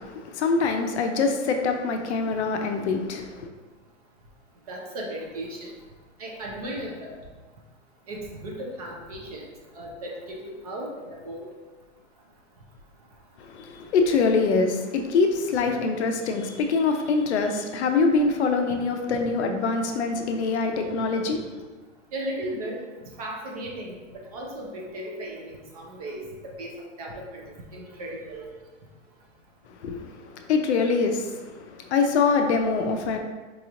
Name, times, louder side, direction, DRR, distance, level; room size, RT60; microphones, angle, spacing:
voice 1, 0.0-3.5 13.4-21.5 29.8-33.2, left 4 dB, 60° left, 5 dB, 0.6 m, -24 dB
voice 2, 4.7-5.7 6.2-7.2 8.1-9.5 9.7-11.5 22.1-22.8 23.2-24.0 24.3-26.3 26.6-26.7 27.0-27.4 27.7-28.5 32.6-32.7, right 1 dB, 30° right, -1 dB, 0.5 m, -36 dB
4.7 x 2.9 x 2.5 m, 1.3 s
hypercardioid pair, 155°, 39 cm